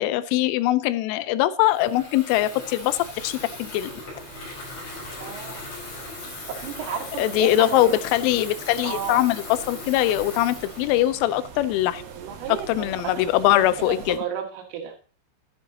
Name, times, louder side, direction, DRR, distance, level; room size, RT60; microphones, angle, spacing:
voice 1, 0.0-3.9 7.2-12.0 12.7-14.2, left 14 dB, 85° left, 14 dB, 3.2 m, -22 dB
Water tap faucet / Fill (with liquid), 1.6-11.9, left 2 dB, 40° left, 5.9 m, -39 dB
sound 1, 2.8-14.2, right 6 dB, 65° right, 2.8 m, -45 dB
voice 2, 5.2-5.6 6.3-8.0 8.8-9.2 12.0-15.0, right 8 dB, 85° right, 1 dB, 4.3 m, -34 dB
11.5 x 11.5 x 2.9 m, 0.39 s
omnidirectional pair, 5.6 m